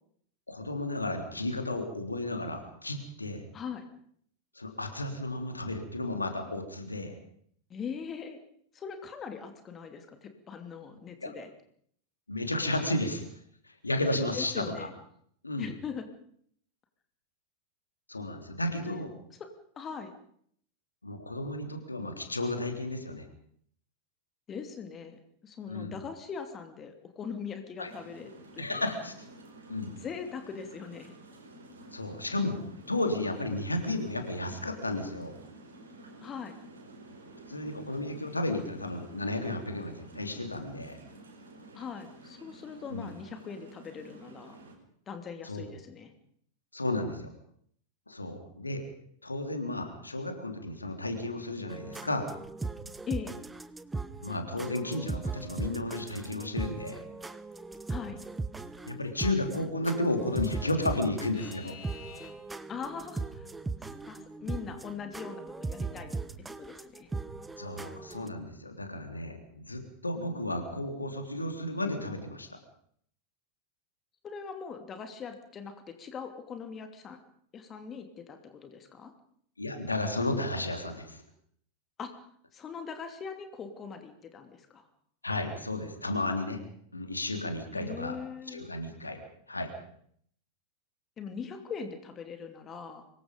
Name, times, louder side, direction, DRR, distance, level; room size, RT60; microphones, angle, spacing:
voice 1, 0.5-3.4 4.6-7.1 11.2-11.3 12.3-13.2 13.6-14.9 15.4-15.7 18.1-19.1 21.0-23.3 25.7-26.0 27.8-27.9 28.6-29.1 29.7-29.9 31.9-32.6 32.9-35.4 37.5-41.0 42.9-43.1 45.4-45.6 46.7-47.3 48.1-48.8 49.2-52.3 54.2-57.0 58.9-61.8 67.6-72.6 79.6-81.2 85.2-86.6 86.9-88.2 88.5-89.2 89.5-89.7, left 2 dB, 80° left, 5 dB, 3.5 m, -33 dB
voice 2, 3.5-3.9 7.7-8.4 8.7-11.5 14.3-14.9 15.6-16.1 18.8-19.1 19.4-19.5 19.8-20.1 24.5-28.9 30.0-31.1 36.2-36.6 41.7-44.6 45.1-46.1 53.1-53.4 57.9-58.2 62.7-63.5 63.8-66.2 66.6-67.1 74.2-77.2 77.5-79.1 82.0-82.1 82.5-84.9 87.7-88.7 91.2-93.1, left 6 dB, 25° left, 7 dB, 2.8 m, -41 dB
sound 1, 27.8-44.8, right 2 dB, 70° right, 5.1 m, -51 dB
sound 2, 51.7-68.3, right 3 dB, 10° right, 1.2 m, -39 dB
Alarm / Clock, 57.5-62.3, left 7 dB, 45° left, 6.9 m, -49 dB
25.5 x 22.5 x 5.3 m, 0.64 s
figure-of-eight pair, 90°, 0 cm